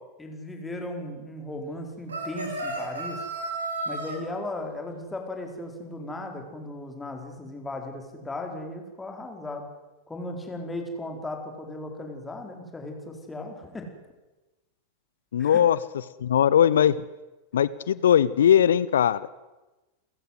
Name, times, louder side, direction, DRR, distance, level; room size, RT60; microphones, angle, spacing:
voice 1, 0.2-3.2 3.8-9.7 10.1-13.9 15.4-15.6, left 1 dB, 10° left, 3 dB, 4.8 m, -36 dB
sound 1, 2.1-4.2, right 2 dB, 70° right, 5.0 m, -32 dB
voice 2, 15.3-15.8 16.2-16.9 17.5-19.3, left 9 dB, 65° left, 19 dB, 0.7 m, -20 dB
30.0 x 15.0 x 8.1 m, 1.1 s
figure-of-eight pair, 90°, 0 cm